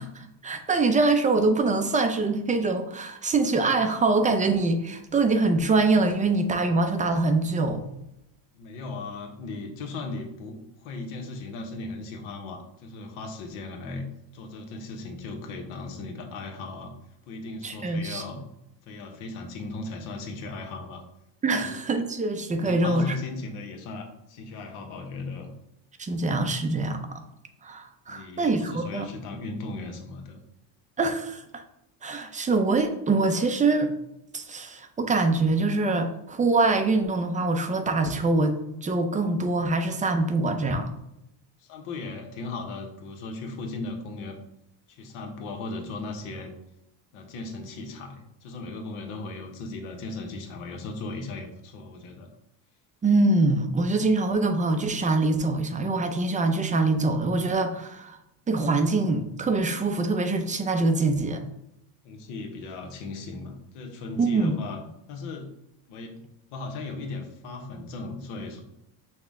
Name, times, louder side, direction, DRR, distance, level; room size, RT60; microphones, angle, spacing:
voice 1, 0.0-7.8 17.6-18.2 21.4-23.2 26.0-27.0 27.6-29.1 31.0-31.6 32.0-33.9 34.3-40.9 53.0-58.2 58.5-61.4 64.2-64.5, right 3 dB, 15° right, 7 dB, 0.4 m, -24 dB
voice 2, 8.5-14.1 14.3-16.9 17.3-18.4 18.9-21.0 21.5-21.8 22.5-25.5 28.1-30.4 41.6-44.4 44.9-46.5 47.1-52.3 62.0-64.8 65.1-65.5 65.9-68.6, left 3 dB, 85° left, 3 dB, 1.0 m, -37 dB
5.8 x 2.1 x 3.5 m, 0.83 s
cardioid pair, 100°, 48 cm